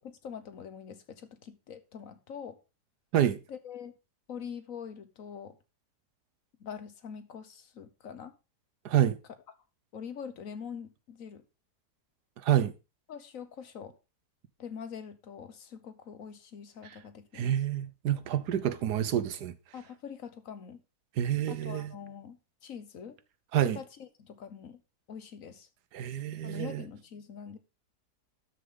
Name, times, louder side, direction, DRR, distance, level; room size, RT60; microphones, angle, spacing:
voice 1, 0.0-2.6 3.5-3.9 4.3-5.6 6.6-8.3 9.9-11.4 13.1-13.9 14.6-17.6 19.7-20.8 21.5-23.2 23.7-24.8 25.1-25.7 26.4-27.6, left 7 dB, 60° left, 1.4 m, -44 dB
voice 2, 8.8-9.2 12.4-12.7 16.8-16.9 17.3-19.5 21.2-22.0 23.5-23.8 25.9-26.8, right 10 dB, 85° right, 1.4 m, -28 dB
12.5 x 6.6 x 3.8 m
omnidirectional pair, 1.7 m